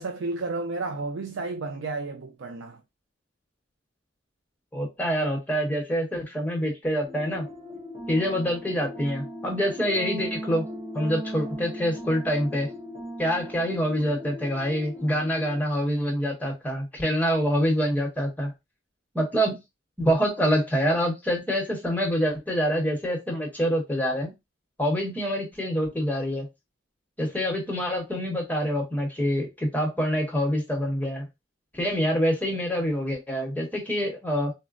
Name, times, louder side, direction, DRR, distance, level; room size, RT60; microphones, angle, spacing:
voice 1, 0.0-2.8, right 3 dB, 80° right, 0.4 m, -32 dB
voice 2, 4.7-7.5 8.1-10.7 10.9-12.7 13.2-18.5 19.1-19.6 20.0-24.3 24.8-26.5 27.2-31.2 31.7-34.5, equal, 10° left, 0.9 m, -26 dB
sound 1, 7.0-15.6, equal, 20° right, 0.7 m, -38 dB
3.9 x 2.0 x 2.4 m
head